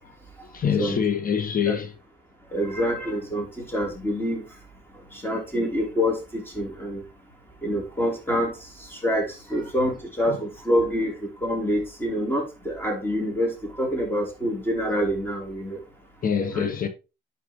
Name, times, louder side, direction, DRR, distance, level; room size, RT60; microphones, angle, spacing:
voice 1, 0.5-1.9 10.3-10.4 16.2-16.9, left 7 dB, 45° left, 1.0 m, -25 dB
voice 2, 2.5-4.5 5.1-7.0 7.6-8.5 8.8-15.8 16.5-16.7, equal, 10° left, 3.7 m, -26 dB
11.0 x 4.7 x 3.1 m
cardioid pair, 90°, 20 cm